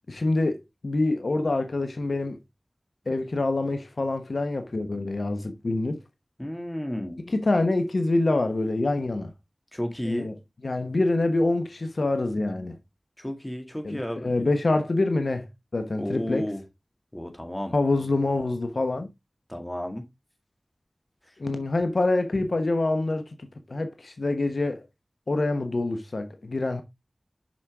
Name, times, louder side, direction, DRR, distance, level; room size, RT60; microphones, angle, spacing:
voice 1, 0.1-2.4 3.1-6.0 7.3-9.3 10.0-10.4 10.6-12.8 13.8-15.5 15.7-16.5 17.7-19.1 21.4-24.8 25.3-26.8, left 2 dB, 75° left, 1.0 m, -26 dB
voice 2, 6.4-7.2 9.7-10.3 13.2-14.3 16.0-16.6 17.1-17.7 19.5-20.0, equal, 15° left, 1.9 m, -32 dB
6.3 x 6.2 x 3.4 m
wide cardioid pair, 45°, 0 cm